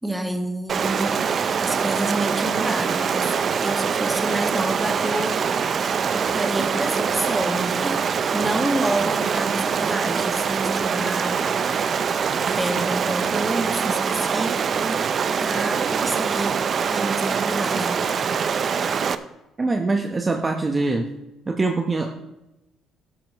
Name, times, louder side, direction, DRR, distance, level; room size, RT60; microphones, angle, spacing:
voice 1, 0.0-3.3 3.6-5.8 6.1-11.7 12.4-18.3, right 1 dB, 10° right, 5 dB, 1.8 m, -29 dB
Stream, 0.7-19.2, right 6 dB, 50° right, 0.6 m, -24 dB
voice 2, 19.6-21.1 21.5-22.1, right 3 dB, 30° right, 3 dB, 1.1 m, -23 dB
12.5 x 11.5 x 3.1 m, 0.94 s
supercardioid pair, 70°, 0 cm